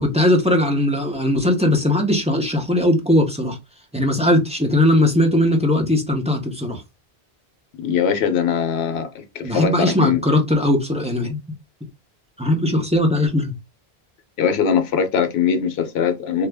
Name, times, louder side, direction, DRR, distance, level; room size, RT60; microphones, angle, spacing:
voice 1, 0.0-3.6 3.9-6.8 9.4-11.4 12.4-13.5, left 1 dB, 10° right, 0.5 m, -19 dB
voice 2, 7.8-10.2 14.4-16.5, left 7 dB, 85° left, 0.9 m, -21 dB
2.7 x 2.4 x 3.4 m
omnidirectional pair, 1.0 m